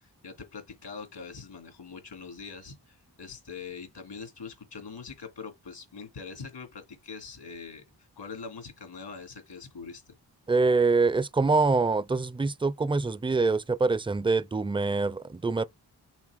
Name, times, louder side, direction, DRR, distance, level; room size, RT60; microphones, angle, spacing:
voice 1, 0.0-10.2, left 5 dB, 80° left, 2.5 m, -43 dB
voice 2, 10.5-15.7, right 3 dB, 10° right, 0.5 m, -25 dB
6.1 x 3.7 x 5.0 m
cardioid pair, 50°, 42 cm